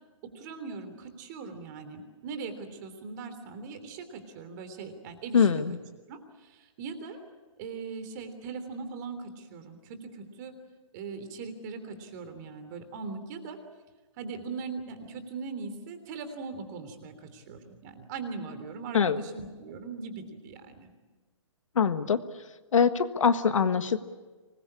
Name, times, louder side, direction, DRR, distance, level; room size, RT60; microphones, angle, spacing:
voice 1, 0.3-5.6 6.1-7.2 7.6-10.5 10.9-13.6 14.2-20.9, right 4 dB, 35° right, 9 dB, 3.3 m, -40 dB
voice 2, 5.3-5.8 18.9-19.2 21.7-22.2 22.7-24.0, left 6 dB, 70° left, 10 dB, 1.5 m, -23 dB
24.5 x 20.5 x 8.7 m, 1.3 s
hypercardioid pair, 150°, 17 cm